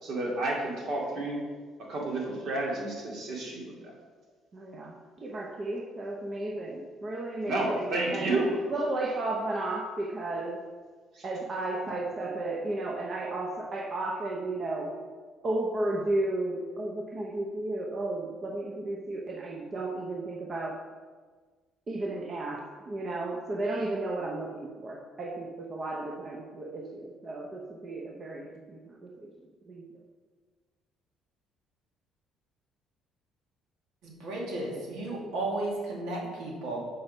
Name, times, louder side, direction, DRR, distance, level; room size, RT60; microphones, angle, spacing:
voice 1, 0.0-1.4 1.9-3.9 7.4-8.5 11.1-11.2, right 2 dB, 60° right, -2 dB, 2.4 m, -31 dB
voice 2, 4.5-10.6 11.2-15.0 15.4-20.8 21.9-29.3 29.7-29.8, right 2 dB, 35° right, 0 dB, 0.8 m, -33 dB
voice 3, 34.0-36.8, right 2 dB, 80° right, -3 dB, 2.4 m, -34 dB
7.6 x 5.4 x 5.4 m, 1.5 s
cardioid pair, 130°, 0 cm